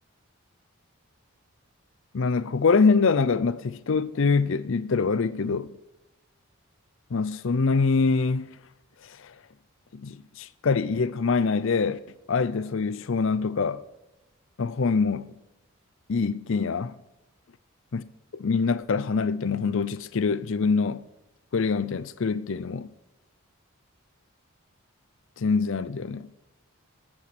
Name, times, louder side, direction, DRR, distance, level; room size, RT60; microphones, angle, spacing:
voice 1, 2.1-5.7 7.1-8.5 9.0-9.3 9.9-12.0 12.3-13.8 14.6-15.3 16.1-17.0 17.9-18.0 18.3-21.1 21.5-22.9 25.4-26.3, left 4 dB, 60° left, 0.5 m, -24 dB
13.5 x 8.8 x 4.3 m
head